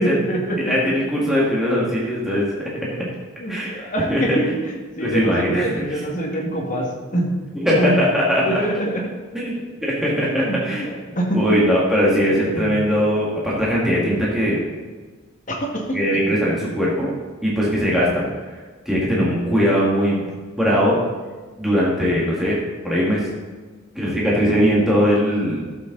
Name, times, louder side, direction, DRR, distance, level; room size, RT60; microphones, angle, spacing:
voice 1, 0.0-0.7 3.0-3.1 3.4-7.3 7.7-7.9 8.4-9.0 10.2-11.4 12.1-12.9 15.5-16.0 16.3-16.4, right 1 dB, 35° left, -1 dB, 1.9 m, -25 dB
voice 2, 0.7-2.5 3.5-4.4 5.0-6.0 7.6-8.6 9.3-10.9 11.3-14.6 15.9-17.1 17.4-18.2 18.9-20.2 20.5-21.0 21.6-22.6 22.8-23.3 23.9-25.7, equal, ahead, -6 dB, 2.0 m, -20 dB
13.0 x 7.6 x 4.0 m, 1.4 s
head